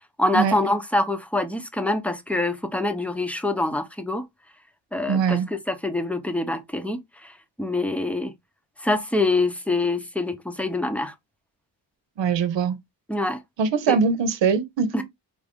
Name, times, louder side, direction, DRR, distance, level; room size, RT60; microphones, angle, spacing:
voice 1, 0.2-4.3 4.9-5.4 5.7-7.3 7.6-8.3 8.8-11.1 13.1-13.4 13.9-14.0 14.9-15.0, left 2 dB, 5° left, 0.8 m, -25 dB
voice 2, 5.1-5.5 12.2-12.8 13.6-14.9, right 6 dB, 70° right, 1.0 m, -22 dB
5.1 x 2.6 x 3.5 m
cardioid pair, 80°, 45 cm